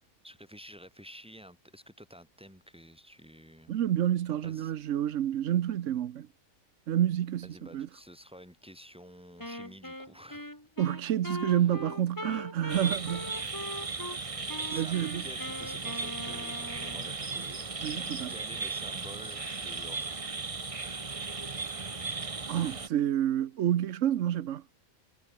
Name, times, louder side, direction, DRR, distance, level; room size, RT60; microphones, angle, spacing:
voice 1, 0.2-3.8 4.4-4.7 7.4-10.5 11.5-11.8 12.3-12.5 14.7-17.7 18.3-20.3, equal, 5° right, 7.5 m, -50 dB
voice 2, 3.7-6.3 6.9-7.9 10.8-13.3 14.7-15.2 17.8-18.3 22.5-24.6, right 11 dB, 60° right, 1.1 m, -29 dB
Wind instrument woodwind instrument, 9.4-14.2 14.5-17.1, left 1 dB, 15° left, 3.4 m, -41 dB
sound 1, 12.7-22.9, right 4 dB, 25° right, 1.1 m, -36 dB
omnidirectional pair, 1.5 m